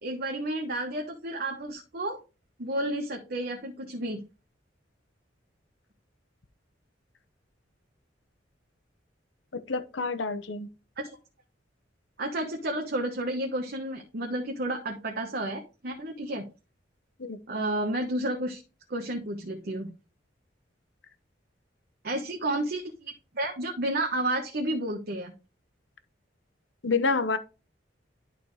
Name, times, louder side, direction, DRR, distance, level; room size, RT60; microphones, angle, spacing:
voice 1, 0.0-2.2 2.6-4.2 11.0-11.2 12.2-16.4 17.5-18.6 18.9-19.9 22.0-25.3, right 1 dB, 55° right, 1.2 m, -31 dB
voice 2, 9.5-10.7 17.2-17.4 26.8-27.4, left 4 dB, 70° left, 0.9 m, -28 dB
11.0 x 4.3 x 3.2 m
head